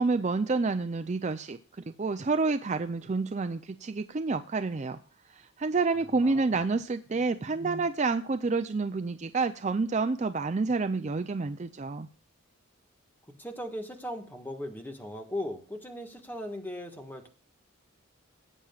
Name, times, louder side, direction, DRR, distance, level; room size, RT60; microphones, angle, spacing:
voice 1, 0.0-5.0 5.3-12.1, right 3 dB, 35° right, 9 dB, 0.4 m, -29 dB
voice 2, 6.2-6.6 13.4-17.3, left 1 dB, 10° left, 4 dB, 1.5 m, -38 dB
17.5 x 8.7 x 2.4 m, 0.39 s
head